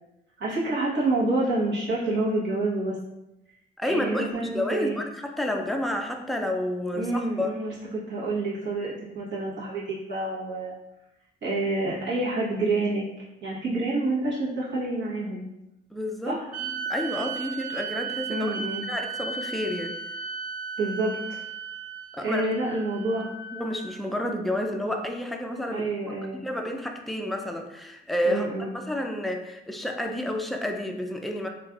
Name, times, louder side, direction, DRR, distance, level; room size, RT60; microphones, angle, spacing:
voice 1, 0.4-3.0 3.9-5.0 6.9-7.7 8.1-10.7 11.4-13.1 13.4-15.4 16.2-16.5 18.3-18.9 20.8-21.4 22.2-23.3 25.7-26.4 28.2-28.7, right 2 dB, 65° right, -7 dB, 1.2 m, -28 dB
voice 2, 3.8-7.5 15.9-18.5 18.9-19.9 22.1-22.5 23.5-25.9 26.3-28.5 28.7-31.5, left 1 dB, ahead, 3 dB, 0.3 m, -30 dB
sound 1, 16.5-24.0, right 6 dB, 40° right, 0.8 m, -35 dB
3.1 x 2.5 x 2.4 m, 0.90 s
cardioid pair, 90°, 20 cm